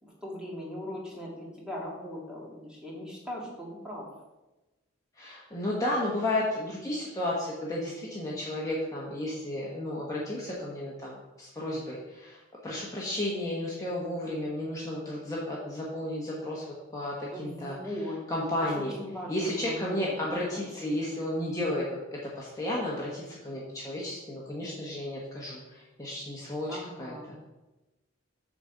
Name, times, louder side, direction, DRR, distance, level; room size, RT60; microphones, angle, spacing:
voice 1, 0.0-4.1 17.3-18.2 18.6-20.1 20.5-20.9 26.7-27.3, equal, 5° right, -4 dB, 2.1 m, -39 dB
voice 2, 5.2-16.7 16.9-18.9 19.3-27.4, left 1 dB, 15° left, -5 dB, 1.3 m, -33 dB
8.7 x 4.3 x 6.6 m, 1.0 s
head